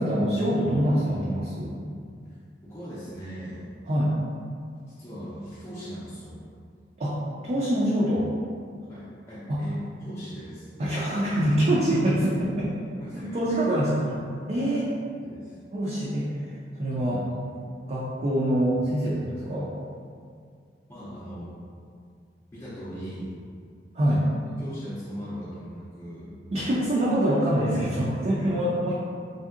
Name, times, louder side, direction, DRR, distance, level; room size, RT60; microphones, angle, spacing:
voice 1, 0.0-1.8 3.9-4.2 7.0-8.3 9.5-9.6 10.8-12.7 13.1-14.2 14.5-14.9 15.7-16.3 16.8-17.2 17.9-19.7 23.9-24.2 26.5-29.0, right 1 dB, 40° right, -7 dB, 0.4 m, -25 dB
voice 2, 2.3-3.7 5.0-6.4 8.9-10.7 12.4-12.5 13.0-13.4 15.2-15.6 17.0-17.2 17.5-17.6 20.9-21.6 22.5-23.3 24.1-24.2 24.6-26.4 28.1-28.5, equal, 15° left, -11 dB, 0.5 m, -39 dB
3.3 x 2.7 x 2.4 m, 2.2 s
head